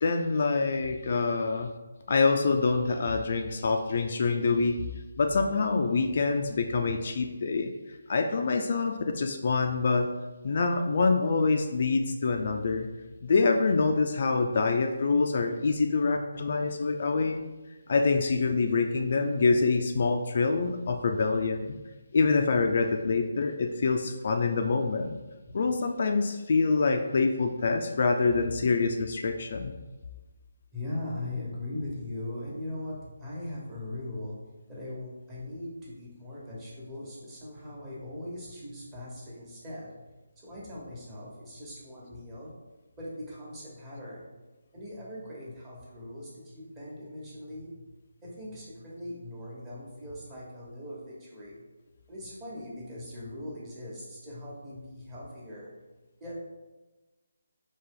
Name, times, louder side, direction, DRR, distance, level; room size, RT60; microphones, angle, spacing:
voice 1, 0.0-1.7 2.1-4.8 5.2-7.7 8.1-10.1 10.4-12.9 13.2-17.4 17.9-21.8 22.1-25.1 25.5-29.7, left 4 dB, 50° left, 5 dB, 0.3 m, -26 dB
voice 2, 30.7-40.1 40.4-42.5 43.0-44.3 44.7-47.9 48.2-51.6 52.1-55.7 56.2-56.4, left 1 dB, 15° right, -7 dB, 1.1 m, -40 dB
4.2 x 2.9 x 3.7 m, 1.1 s
hypercardioid pair, 165°, 0 cm